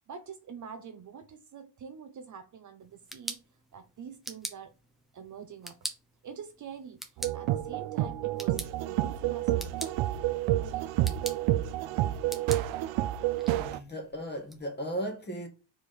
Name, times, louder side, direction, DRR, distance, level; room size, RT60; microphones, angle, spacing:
voice 1, 0.1-3.4 3.7-4.7 5.1-5.8 6.2-9.7 10.6-11.1, right 6 dB, 40° right, 0.7 m, -46 dB
sound 1, 2.8-14.6, right 1 dB, ahead, 0.7 m, -45 dB
sound 2, 7.2-13.8, right 14 dB, 90° right, 0.7 m, -29 dB
voice 2, 13.6-15.5, equal, 20° left, 1.6 m, -36 dB
4.8 x 4.2 x 5.1 m
cardioid pair, 160°, 46 cm